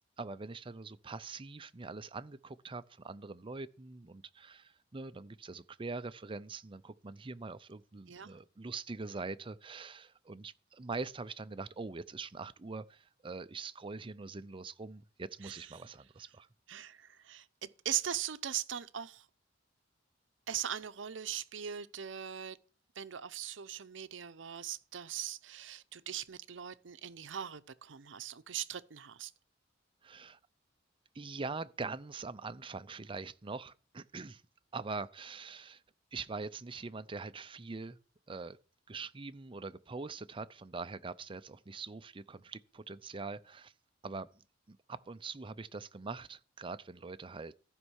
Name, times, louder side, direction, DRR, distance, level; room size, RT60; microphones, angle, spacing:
voice 1, 0.2-16.5 30.0-30.4 31.1-34.4 34.7-35.8 36.1-38.0 38.3-38.6 38.9-43.7 44.0-47.5, right 4 dB, 25° right, 0.5 m, -43 dB
voice 2, 16.7-19.3 20.5-22.6 23.0-29.3, right 10 dB, 70° right, 0.7 m, -40 dB
14.5 x 5.4 x 6.3 m
head